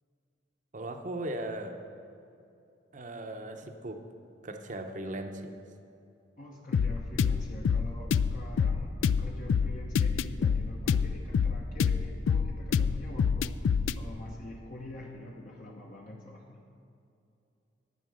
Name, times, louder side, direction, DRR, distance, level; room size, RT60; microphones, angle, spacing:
voice 1, 0.7-1.8 2.9-4.0 4.4-5.6, right 1 dB, 40° right, 5 dB, 0.8 m, -38 dB
voice 2, 6.4-16.6, left 1 dB, 40° left, -2 dB, 0.9 m, -44 dB
sound 1, 6.7-14.0, left 6 dB, 80° left, 0.3 m, -27 dB
11.0 x 8.9 x 6.2 m, 2.7 s
head